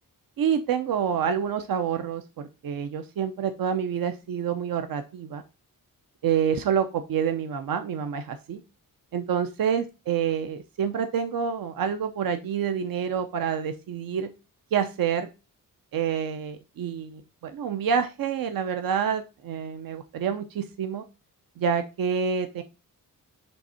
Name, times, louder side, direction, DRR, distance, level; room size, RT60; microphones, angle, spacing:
voice 1, 0.4-5.4 6.2-8.6 9.1-14.3 14.7-15.3 15.9-21.0 21.6-22.6, right 7 dB, 90° right, 8 dB, 0.8 m, -27 dB
7.9 x 3.5 x 4.2 m, 0.28 s
wide cardioid pair, 175°, 33 cm